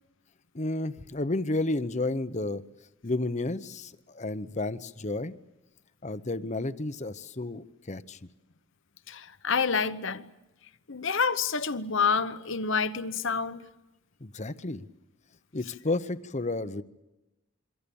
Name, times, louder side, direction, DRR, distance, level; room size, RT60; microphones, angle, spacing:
voice 1, 0.5-2.6 3.0-5.3 6.0-8.2 14.2-14.9 15.5-16.8, left 2 dB, 30° left, 0.8 m, -31 dB
voice 2, 9.1-10.3 10.9-13.6, left 5 dB, 60° left, 1.0 m, -28 dB
27.0 x 24.5 x 7.0 m
head